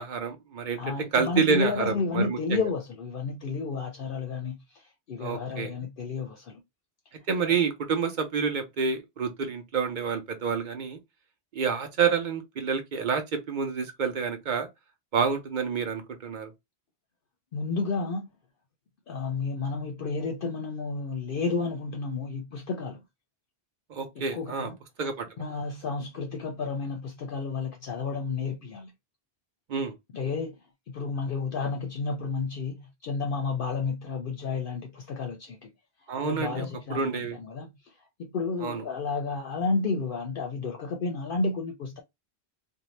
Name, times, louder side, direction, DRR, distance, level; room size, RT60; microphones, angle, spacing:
voice 1, 0.0-0.8 1.1-2.6 5.2-5.7 7.3-11.0 11.5-14.7 15.1-16.5 23.9-24.7 25.0-25.3 29.7-29.9 36.1-37.4 38.6-38.8, right 6 dB, 50° right, 0.7 m, -28 dB
voice 2, 0.8-6.6 17.5-18.3 19.1-23.0 24.3-24.8 25.4-28.9 30.1-30.6 30.9-35.7 36.2-37.7 38.2-42.0, left 4 dB, 60° left, 0.7 m, -31 dB
2.6 x 2.1 x 3.0 m
omnidirectional pair, 1.1 m